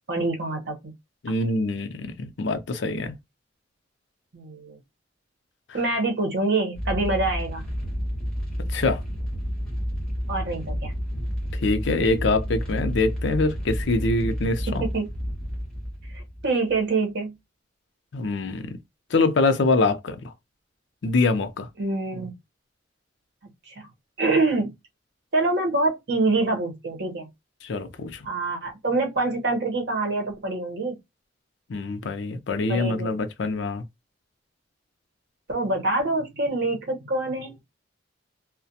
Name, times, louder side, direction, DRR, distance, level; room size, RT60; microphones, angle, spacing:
voice 1, 0.1-0.9 4.3-4.8 5.7-7.7 10.3-10.9 14.7-15.1 16.1-17.3 21.8-22.3 23.7-23.9 24.2-24.7 25.3-27.3 28.2-31.0 32.7-33.2 35.5-37.5, right 2 dB, 60° right, 0.9 m, -25 dB
voice 2, 1.2-3.2 8.7-9.0 11.5-14.8 18.1-18.8 19.1-20.3 21.0-21.7 27.6-28.2 31.7-33.8, left 3 dB, 65° left, 0.5 m, -24 dB
sound 1, 6.7-16.8, equal, 5° left, 1.0 m, -30 dB
2.4 x 2.1 x 2.7 m
head